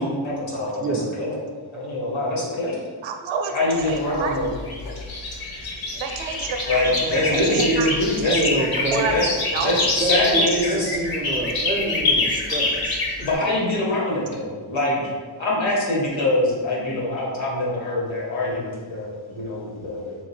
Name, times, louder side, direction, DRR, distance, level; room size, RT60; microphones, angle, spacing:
voice 1, 0.0-1.4 1.7-2.8 3.5-4.5 6.6-8.6 9.1-9.3 9.6-11.0 13.2-15.0 15.4-20.2, left 1 dB, 75° left, -4 dB, 1.3 m, -24 dB
voice 2, 3.0-4.4 6.0-6.8 7.3-8.3 8.9-9.7 10.4-10.6, right 5 dB, 80° right, 4 dB, 0.6 m, -29 dB
sound 1, 3.8-13.3, left 2 dB, 50° left, 0.7 m, -26 dB
voice 3, 7.0-7.6 8.3-9.1 10.0-13.4, right 1 dB, 20° right, 0 dB, 0.3 m, -27 dB
3.8 x 2.8 x 3.1 m, 1.5 s
wide cardioid pair, 180°, 47 cm